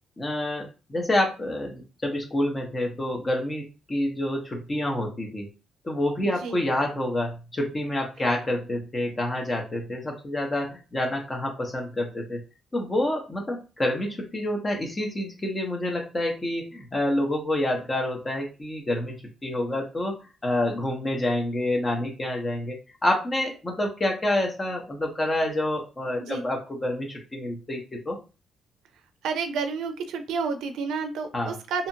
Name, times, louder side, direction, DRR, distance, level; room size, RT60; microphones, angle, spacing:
voice 1, 0.2-5.5 5.8-12.4 12.7-19.2 19.4-20.2 20.4-28.2 31.3-31.5, left 1 dB, 25° left, 1 dB, 0.7 m, -28 dB
voice 2, 6.2-6.6 26.2-26.4 29.2-31.9, right 5 dB, 85° right, 8 dB, 0.4 m, -30 dB
2.7 x 2.4 x 2.7 m, 0.32 s
cardioid pair, 90°, 0 cm